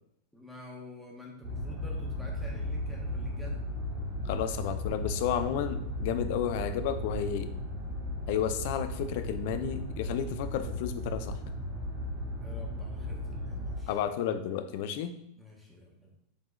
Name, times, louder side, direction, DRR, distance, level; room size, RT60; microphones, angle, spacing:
voice 1, 0.3-3.6 12.4-14.0 15.4-16.2, equal, ahead, -3 dB, 1.3 m, -48 dB
sound 1, 1.4-13.8, left 1 dB, 60° right, 1.4 m, -36 dB
sound 2, 1.6-9.4, equal, 80° left, 1.1 m, -45 dB
voice 2, 4.3-7.5 8.3-11.3 13.9-15.1, left 9 dB, 55° left, 9 dB, 0.4 m, -32 dB
4.9 x 3.6 x 2.5 m, 0.80 s
figure-of-eight pair, 90°, 0 cm